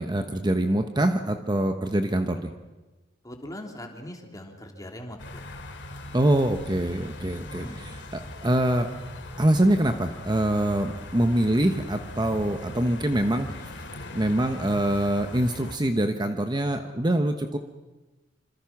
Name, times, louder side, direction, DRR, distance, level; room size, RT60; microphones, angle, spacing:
voice 1, 0.0-2.5 6.1-7.7 8.4-8.9 9.4-13.7 14.1-17.6, right 1 dB, 25° right, 7 dB, 1.1 m, -24 dB
voice 2, 3.2-5.4 7.6-7.9, left 1 dB, 20° left, 2 dB, 3.1 m, -40 dB
sound 1, 5.2-15.8, left 1 dB, 70° left, 2.6 m, -40 dB
26.5 x 26.0 x 6.0 m, 1.1 s
head